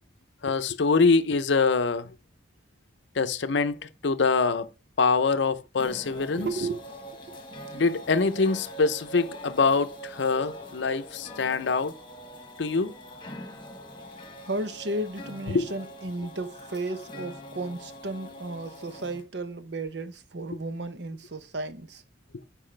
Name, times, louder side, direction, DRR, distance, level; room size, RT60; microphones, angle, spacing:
voice 1, 0.4-2.1 3.2-3.8 4.0-4.7 5.0-6.5 7.7-11.9 12.6-12.9 15.5-15.7, left 4 dB, 65° left, 0.6 m, -24 dB
sound 1, 5.8-19.2, equal, 25° left, 1.5 m, -43 dB
voice 2, 6.3-6.8 14.4-22.0, right 2 dB, 60° right, 0.8 m, -34 dB
8.8 x 4.9 x 3.3 m
head